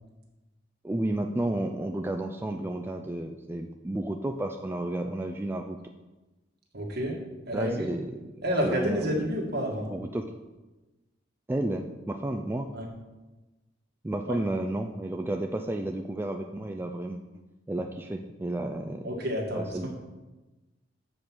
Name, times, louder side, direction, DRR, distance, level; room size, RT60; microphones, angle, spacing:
voice 1, 0.8-5.8 7.5-8.1 8.3-9.3 9.9-10.3 11.5-12.7 14.0-17.2 17.7-19.3 19.5-19.9, right 1 dB, 10° right, 4 dB, 0.3 m, -32 dB
voice 2, 6.7-7.2 7.5-7.8 8.4-9.9 12.7-12.9 14.3-14.4 19.0-19.9, equal, 60° right, 0 dB, 1.7 m, -29 dB
7.0 x 5.0 x 6.1 m, 1.1 s
head